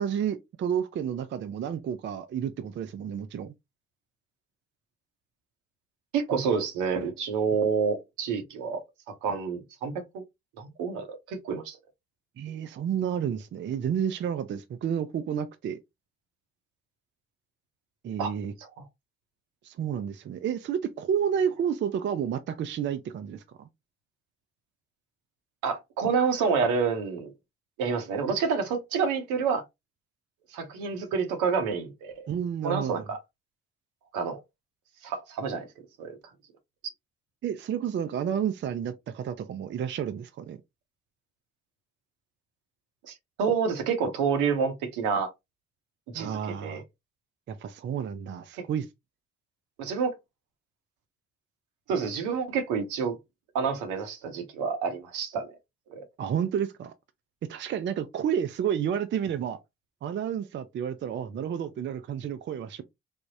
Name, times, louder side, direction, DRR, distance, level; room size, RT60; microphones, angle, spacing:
voice 1, 0.0-3.5 6.3-6.5 12.4-15.8 18.0-18.5 19.6-23.7 32.3-33.1 37.4-40.6 46.1-46.8 47.5-48.9 56.2-56.9 57.5-59.6 60.0-62.8, right 8 dB, 40° right, 0.4 m, -30 dB
voice 2, 6.1-8.8 9.2-10.2 10.6-11.8 18.2-18.3 25.6-27.3 27.8-29.6 30.5-32.3 32.6-33.2 34.1-34.4 35.0-35.7 36.0-36.2 43.1-45.3 46.1-46.8 49.8-50.1 51.9-53.2 53.5-55.5 55.9-56.0, right 5 dB, 70° right, 0.8 m, -28 dB
3.4 x 2.0 x 2.6 m
hypercardioid pair, 45°, 31 cm